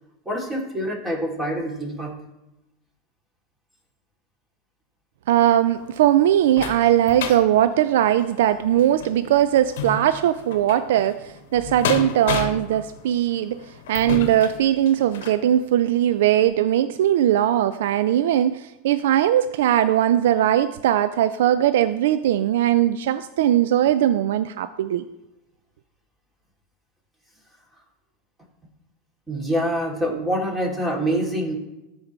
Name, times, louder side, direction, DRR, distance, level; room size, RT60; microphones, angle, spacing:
voice 1, 0.2-2.1 29.3-31.6, equal, 15° right, -1 dB, 2.8 m, -25 dB
voice 2, 5.3-13.6 13.9-25.0, right 11 dB, 70° right, 12 dB, 0.3 m, -20 dB
sound 1, 5.6-15.5 16.0-16.1 16.5-16.6, left 6 dB, 75° left, 0.9 m, -33 dB
13.5 x 4.8 x 3.2 m, 1.0 s
hypercardioid pair, 100°, 0 cm